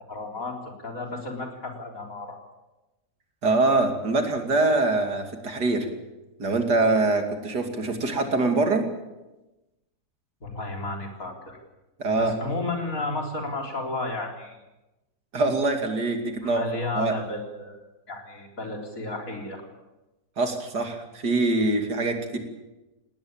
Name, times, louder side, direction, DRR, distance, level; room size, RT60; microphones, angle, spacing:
voice 1, 0.1-2.4 10.4-11.6 12.2-14.6 16.4-19.6, left 2 dB, 55° left, 2 dB, 4.3 m, -33 dB
voice 2, 3.4-5.9 6.4-8.9 12.0-12.3 15.3-16.7 16.9-17.1 20.4-22.4, right 2 dB, 85° right, 5 dB, 3.2 m, -24 dB
19.5 x 18.5 x 8.9 m, 1.0 s
omnidirectional pair, 1.7 m